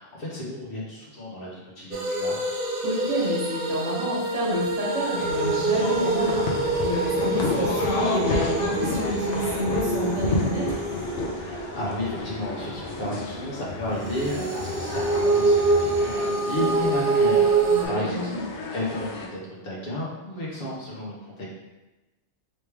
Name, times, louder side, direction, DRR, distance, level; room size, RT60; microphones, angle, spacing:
voice 1, 0.0-2.4 11.3-17.6 17.9-18.3 18.7-21.5, left 1 dB, 50° left, -5 dB, 1.1 m, -32 dB
sound 1, 1.9-13.4 14.1-17.9, right 3 dB, 60° right, 0.7 m, -26 dB
voice 2, 2.8-10.8 17.7-18.4, equal, 35° right, -7 dB, 1.2 m, -29 dB
sound 2, 5.1-19.3, left 3 dB, 75° left, 1.0 m, -32 dB
3.2 x 3.1 x 3.4 m, 1.1 s
omnidirectional pair, 1.2 m